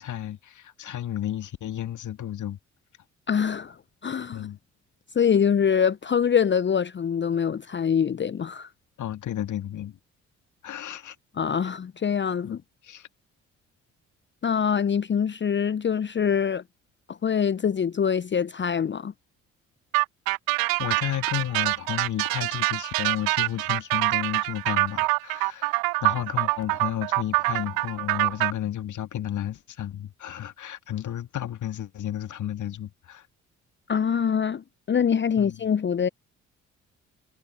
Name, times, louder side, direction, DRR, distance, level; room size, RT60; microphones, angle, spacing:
voice 1, 0.0-2.6 4.3-4.6 9.0-10.0 10.6-11.2 12.4-12.6 12.8-13.1 20.8-33.3 35.4-35.6, left 11 dB, 50° left, 2.0 m, -32 dB
voice 2, 3.3-4.5 5.1-8.7 11.4-12.6 14.4-16.6 17.1-19.1 33.9-36.1, left 7 dB, 30° left, 0.9 m, -24 dB
sound 1, 19.9-28.5, right 26 dB, 60° right, 0.9 m, -25 dB
figure-of-eight pair, 45°, 39 cm